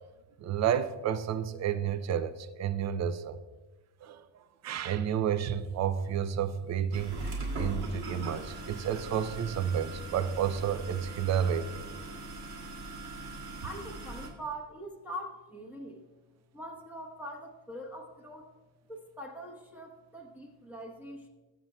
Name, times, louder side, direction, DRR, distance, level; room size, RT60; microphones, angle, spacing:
voice 1, 0.4-3.4 4.0-4.3 4.6-7.2 7.5-11.8, right 8 dB, 35° right, 12 dB, 0.5 m, -31 dB
sound 1, 6.9-14.3, right 2 dB, 55° right, 2.5 m, -40 dB
voice 2, 13.6-16.0 16.5-18.5 18.9-21.3, right 1 dB, 5° right, -2 dB, 1.0 m, -43 dB
20.5 x 7.4 x 2.2 m, 1.2 s
cardioid pair, 140°, 47 cm